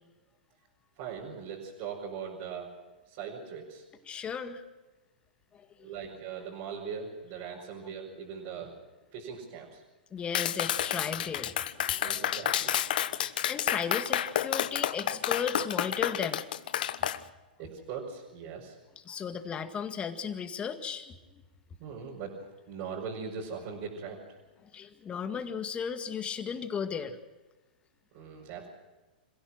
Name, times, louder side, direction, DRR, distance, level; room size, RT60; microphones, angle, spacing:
voice 1, 1.0-2.7 3.1-3.8 5.8-8.7 9.1-9.8 12.0-12.8 17.6-18.8 21.8-24.2 28.1-28.7, right 6 dB, 50° right, -3 dB, 5.4 m, -40 dB
voice 2, 4.1-4.6 5.5-5.7 10.1-12.3 13.2-16.4 19.1-21.4 24.6-27.2, left 6 dB, 20° left, 8 dB, 1.9 m, -35 dB
Clapping, 10.3-17.2, left 11 dB, 65° left, 1.0 m, -30 dB
26.5 x 16.5 x 6.3 m, 1.2 s
hypercardioid pair, 110°, 5 cm